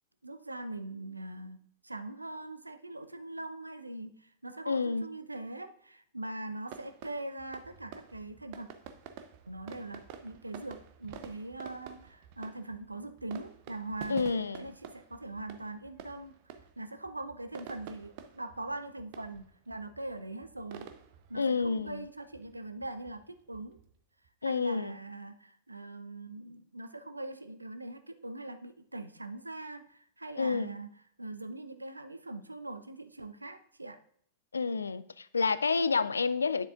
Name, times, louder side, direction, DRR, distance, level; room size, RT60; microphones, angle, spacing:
voice 1, 0.2-8.7 9.5-14.3 14.6-16.3 16.8-20.9 21.3-23.8 24.4-30.9 31.2-34.0, right 2 dB, 85° right, 10 dB, 0.5 m, -42 dB
voice 2, 4.7-5.1 14.1-14.7 21.3-22.0 24.4-25.0 30.4-30.8 34.5-36.7, left 4 dB, 75° left, 16 dB, 0.3 m, -29 dB
sound 1, 6.7-24.3, right 9 dB, 45° right, 0.7 m, -50 dB
9.4 x 7.3 x 2.4 m, 0.63 s
figure-of-eight pair, 95°, 0 cm